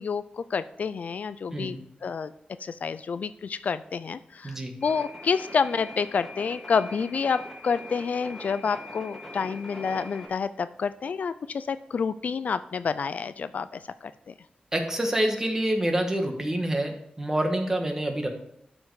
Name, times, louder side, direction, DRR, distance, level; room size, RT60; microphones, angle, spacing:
voice 1, 0.0-2.3 2.6-14.3, left 5 dB, 60° left, 13 dB, 0.4 m, -29 dB
voice 2, 4.4-4.7 14.7-18.3, right 1 dB, 15° right, 3 dB, 1.4 m, -27 dB
sound 1, 4.8-10.3, left 2 dB, 10° left, 2.0 m, -42 dB
12.0 x 5.3 x 4.8 m, 0.73 s
wide cardioid pair, 175°, 3 cm